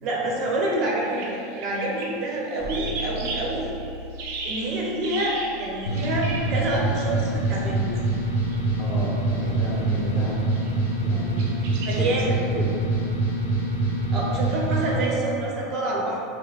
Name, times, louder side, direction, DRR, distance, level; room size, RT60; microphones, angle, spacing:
voice 1, 0.0-3.7 4.4-7.9 11.8-12.4 14.1-16.2, right 2 dB, 50° right, -3 dB, 0.9 m, -27 dB
sound 1, 1.0-6.6 7.2-7.7 7.9-8.0 8.5-8.7 9.4-9.7 10.3-10.7 11.4-12.3, right 3 dB, 70° right, 0.6 m, -36 dB
sound 2, 2.6-10.1, equal, 5° right, 0.7 m, -39 dB
sound 3, 5.9-15.0, right 2 dB, 85° left, 0.5 m, -25 dB
voice 2, 8.8-10.4 11.0-11.5 12.0-12.8, equal, 35° left, -5 dB, 1.2 m, -32 dB
5.7 x 2.1 x 2.5 m, 2.7 s
hypercardioid pair, 105°, 0 cm